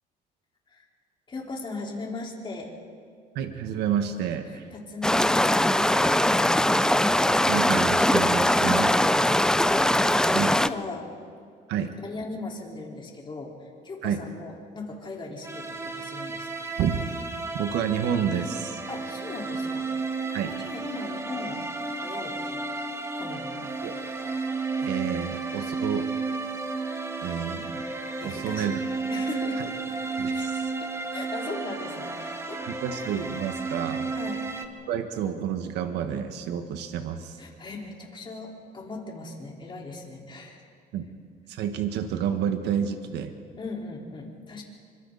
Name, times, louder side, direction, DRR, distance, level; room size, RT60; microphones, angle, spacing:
voice 1, 1.3-2.7 4.4-6.4 8.5-11.1 11.9-16.7 18.9-19.9 20.4-21.6 21.9-22.6 23.2-23.7 28.2-28.7 29.1-29.8 30.3-30.5 30.8-32.8 34.1-34.5 37.4-40.7 43.6-44.6, left 3 dB, 30° left, -2 dB, 4.5 m, -39 dB
voice 2, 3.3-4.7 7.1-7.2 7.5-8.9 10.3-10.5 11.7-11.9 14.0-14.2 16.8-17.0 17.5-18.8 20.3-20.5 23.8-23.9 24.8-26.1 27.2-27.9 28.2-28.8 29.6-29.7 30.2-30.7 32.6-34.1 34.9-37.4 40.9-41.1 41.5-43.3, right 8 dB, 80° right, 6 dB, 1.6 m, -29 dB
sound 1, 5.0-10.7, left 1 dB, 5° left, 0.5 m, -21 dB
sound 2, 15.4-34.7, right 3 dB, 15° right, 1.8 m, -32 dB
29.5 x 25.0 x 4.2 m, 2.2 s
cardioid pair, 110°, 17 cm